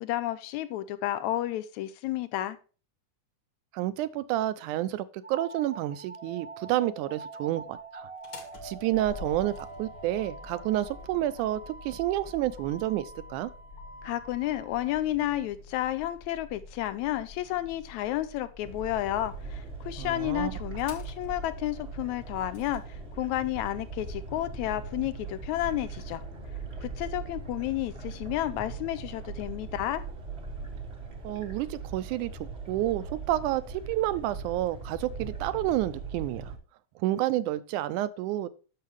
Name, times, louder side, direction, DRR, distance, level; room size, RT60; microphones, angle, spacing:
voice 1, 0.0-2.6 14.0-26.2 26.8-30.0, left 14 dB, 80° left, 1.9 m, -31 dB
voice 2, 3.7-8.1 8.6-13.5 20.0-20.5 31.2-32.3 32.7-36.5 37.0-38.5, right 14 dB, 80° right, 2.1 m, -29 dB
sound 1, 5.2-14.6, right 3 dB, 30° right, 1.1 m, -46 dB
Motor vehicle (road), 8.1-22.8, left 2 dB, 45° left, 1.9 m, -47 dB
sound 2, 18.6-36.6, right 4 dB, 50° right, 0.7 m, -40 dB
9.2 x 6.7 x 3.1 m
omnidirectional pair, 3.5 m